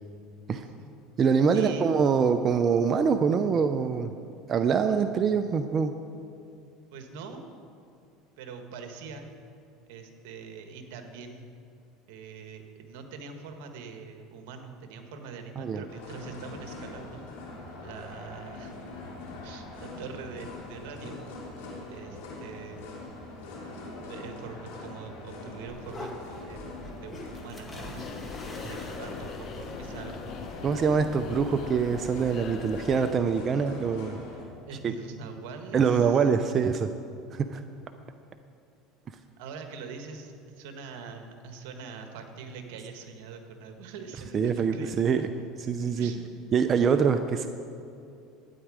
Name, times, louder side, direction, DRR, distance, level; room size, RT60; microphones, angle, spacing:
voice 1, 0.5-0.9 1.5-1.9 4.9-5.0 6.9-7.5 8.4-9.3 9.9-11.5 12.1-17.3 17.8-18.9 19.4-21.2 21.9-22.9 24.1-30.2 34.7-36.2 39.4-45.3 46.0-46.3 46.8-47.1, right 5 dB, 75° right, 6 dB, 1.3 m, -43 dB
voice 2, 1.2-4.1 4.5-5.9 15.6-15.8 30.6-34.2 34.8-34.9 35.7-36.9 37.3-37.6 44.3-45.3 45.7-46.1 46.5-47.5, right 6 dB, 35° right, 8 dB, 0.5 m, -24 dB
sound 1, 15.9-34.4, left 2 dB, 85° left, 3.0 m, -43 dB
sound 2, 25.7-33.9, left 1 dB, 15° left, 1.8 m, -46 dB
sound 3, 28.0-33.1, left 5 dB, 50° left, 0.8 m, -41 dB
12.5 x 9.2 x 4.9 m, 2.5 s
supercardioid pair, 110°, 0 cm